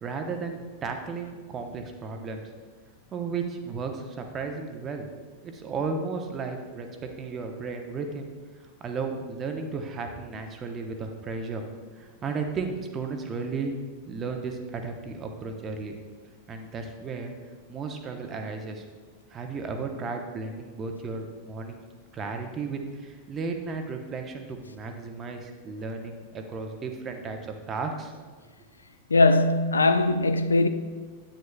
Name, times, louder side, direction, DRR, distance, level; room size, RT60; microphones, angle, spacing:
voice 1, 0.0-2.4 3.1-5.1 5.4-8.3 8.8-11.6 12.0-13.7 14.1-16.0 16.5-17.3 17.7-18.8 19.3-21.8 22.1-27.4 27.7-28.1, right 4 dB, 25° right, 0.8 m, -34 dB
voice 2, 29.1-30.7, left 2 dB, 75° left, 0.3 m, -20 dB
9.4 x 8.9 x 2.3 m
figure-of-eight pair, 90°, 0 cm